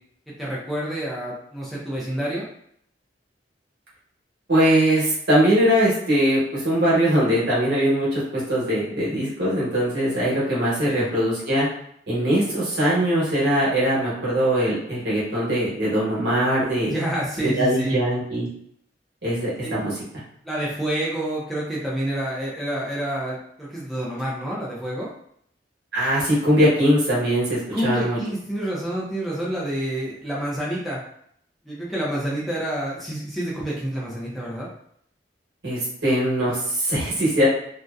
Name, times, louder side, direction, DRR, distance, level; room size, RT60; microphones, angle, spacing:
voice 1, 0.4-2.4 10.9-11.1 16.9-18.0 19.6-19.8 20.4-25.1 27.7-31.0 31.6-34.7, right 1 dB, ahead, -7 dB, 0.5 m, -28 dB
voice 2, 4.5-11.7 12.1-16.9 17.4-18.5 19.2-20.0 25.9-28.2 35.6-37.5, equal, 65° right, -7 dB, 1.0 m, -21 dB
2.6 x 2.1 x 2.3 m, 0.68 s
head